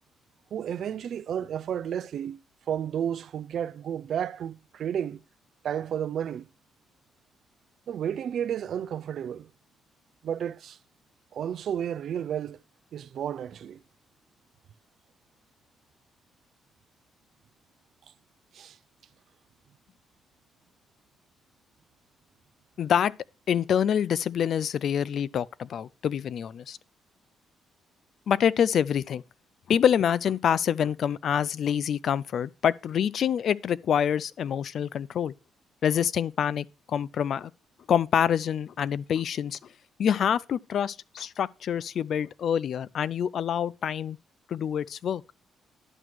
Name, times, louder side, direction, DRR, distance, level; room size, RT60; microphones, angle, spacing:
voice 1, 0.5-2.4 2.7-5.2 5.6-6.5 7.9-9.5 10.2-10.8 11.3-12.6 12.9-13.8 18.5-18.8, right 9 dB, 65° right, 0.5 m, -32 dB
voice 2, 22.8-23.1 23.5-26.8 28.3-29.2 29.7-35.3 35.8-37.5 37.9-39.6 40.0-44.2 44.5-45.2, left 8 dB, 60° left, 0.4 m, -26 dB
11.0 x 6.1 x 4.6 m
cardioid pair, 90°, 0 cm